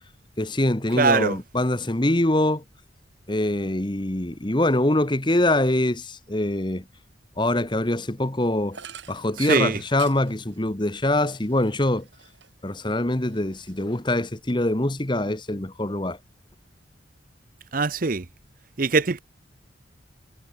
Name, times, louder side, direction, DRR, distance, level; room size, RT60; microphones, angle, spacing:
voice 1, 0.4-2.6 3.3-6.8 7.4-8.8 9.1-12.1 12.6-16.2, left 1 dB, 25° left, 1.3 m, -24 dB
voice 2, 0.9-1.4 9.4-9.8 17.7-18.3 18.8-19.2, right 4 dB, 45° right, 0.8 m, -22 dB
sound 1, 8.7-12.7 13.1-14.3, right 7 dB, 70° right, 5.8 m, -47 dB
head